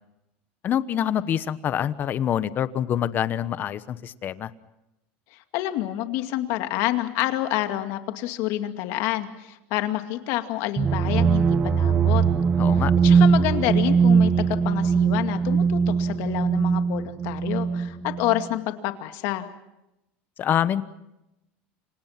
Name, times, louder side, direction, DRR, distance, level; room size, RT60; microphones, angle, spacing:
voice 1, 0.6-4.5 12.6-12.9 20.4-20.8, left 10 dB, 35° left, 14 dB, 1.1 m, -25 dB
voice 2, 5.5-12.2 12.8-19.5, left 14 dB, 65° left, 7 dB, 2.4 m, -28 dB
sound 1, 10.8-18.4, right 6 dB, 25° right, 1.1 m, -21 dB
30.0 x 26.0 x 5.9 m, 0.90 s
supercardioid pair, 135°, 6 cm